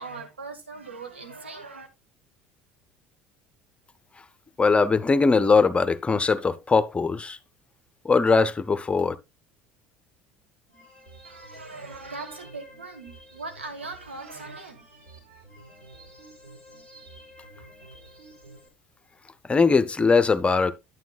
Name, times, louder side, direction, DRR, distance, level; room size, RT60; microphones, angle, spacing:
voice 1, 0.0-1.9 11.2-14.8, right 3 dB, 85° right, 1.4 m, -40 dB
voice 2, 4.6-7.4 8.0-9.2 19.5-20.7, left 4 dB, 20° left, 0.7 m, -21 dB
sound 1, 10.7-18.7, right 1 dB, 65° right, 5.0 m, -49 dB
9.4 x 9.3 x 2.3 m
figure-of-eight pair, 65°, 6 cm